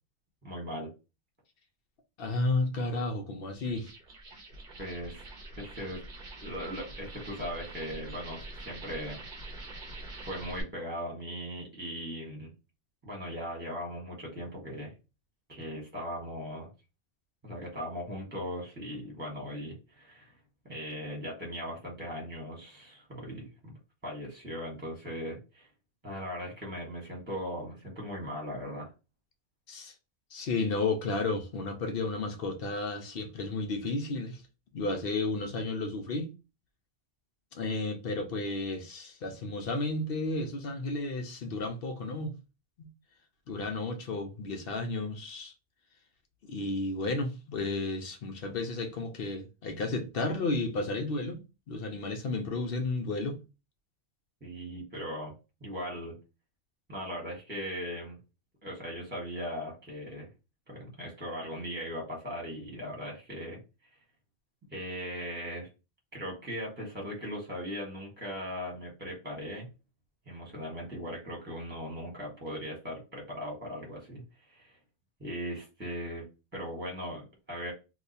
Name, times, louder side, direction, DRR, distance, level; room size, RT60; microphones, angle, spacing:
voice 1, 0.4-0.9 4.3-4.4 4.8-5.2 5.6-6.0 6.4-9.2 10.2-12.5 13.0-14.9 15.5-16.7 17.4-20.3 20.6-23.8 24.0-25.7 26.0-28.9 54.4-55.3 55.6-56.2 56.9-58.2 58.6-60.3 60.7-63.6 64.7-65.7 66.1-69.7 70.3-74.8 75.2-76.2 76.5-77.7, equal, 10° right, 1.2 m, -39 dB
voice 2, 2.2-3.9 29.7-29.9 30.3-34.4 34.7-36.3 37.5-42.3 42.8-42.9 43.5-45.5 46.4-51.4 51.7-53.4, left 2 dB, 60° left, 0.7 m, -32 dB
sound 1, 3.5-10.6, right 2 dB, 45° right, 0.8 m, -45 dB
2.9 x 2.2 x 3.9 m
omnidirectional pair, 1.2 m